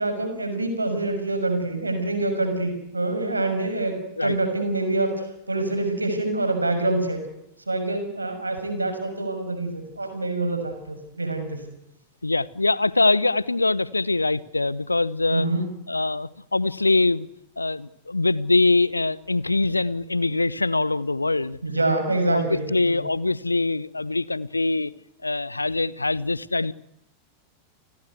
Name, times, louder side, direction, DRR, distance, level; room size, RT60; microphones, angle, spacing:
voice 1, 0.0-4.0 4.2-7.2 7.7-11.6 15.3-15.7 21.6-23.0, right 2 dB, 80° right, 7 dB, 6.3 m, -26 dB
voice 2, 12.2-15.5 15.9-17.3 17.6-21.6 22.3-24.9 25.2-26.7, left 2 dB, 80° left, 21 dB, 0.9 m, -23 dB
30.0 x 19.5 x 8.2 m, 0.83 s
figure-of-eight pair, 90°, 0 cm